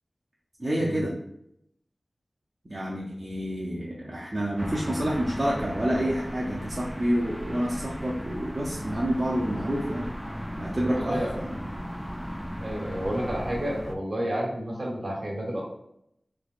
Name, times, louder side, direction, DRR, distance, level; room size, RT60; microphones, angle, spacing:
voice 1, 0.6-1.1 2.6-10.1 10.6-11.7, equal, 40° right, -5 dB, 0.6 m, -28 dB
sound 1, 4.6-14.0, equal, ahead, 0.3 m, -36 dB
voice 2, 10.9-11.3 12.6-15.6, equal, 60° right, -3 dB, 1.3 m, -30 dB
3.3 x 3.0 x 2.4 m, 0.75 s
wide cardioid pair, 55°, 0 cm